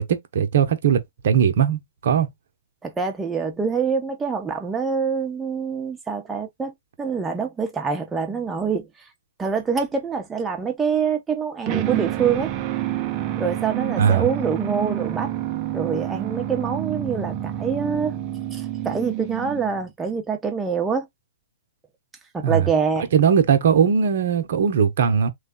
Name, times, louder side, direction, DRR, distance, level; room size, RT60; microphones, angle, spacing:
voice 1, 0.0-2.3 14.0-14.3 22.4-22.7 23.1-25.3, right 7 dB, 65° right, 0.9 m, -19 dB
voice 2, 2.8-8.9 9.4-12.5 13.4-15.3 15.7-18.2 18.5-21.1 22.3-23.1, right 6 dB, 10° right, 0.9 m, -25 dB
sound 1, 11.7-19.9, right 12 dB, 35° right, 0.6 m, -28 dB
3.3 x 2.3 x 3.7 m
hypercardioid pair, 125°, 0 cm